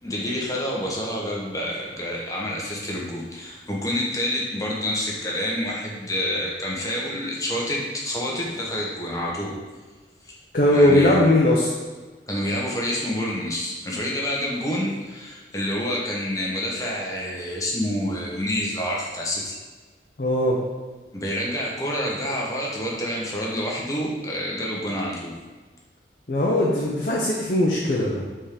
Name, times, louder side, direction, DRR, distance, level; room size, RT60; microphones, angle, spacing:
voice 1, 0.0-9.5 10.2-10.4 10.7-11.2 12.3-19.6 21.1-25.4, left 1 dB, 20° left, -3 dB, 1.0 m, -28 dB
voice 2, 10.5-11.7 20.2-20.6 26.3-28.3, left 1 dB, 50° left, -3 dB, 0.7 m, -19 dB
5.2 x 3.7 x 5.0 m, 1.3 s
head